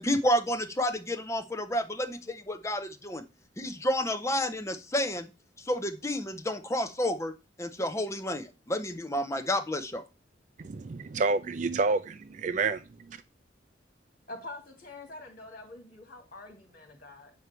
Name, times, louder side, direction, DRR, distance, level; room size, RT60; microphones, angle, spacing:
voice 1, 0.0-3.2 3.6-5.3 5.7-7.3 7.6-10.0, left 1 dB, 15° left, 8 dB, 0.7 m, -30 dB
voice 2, 10.6-13.2, right 4 dB, 40° right, 12 dB, 0.4 m, -29 dB
voice 3, 14.3-17.3, left 2 dB, 50° left, 2 dB, 2.6 m, -45 dB
8.3 x 4.9 x 4.5 m, 0.30 s
head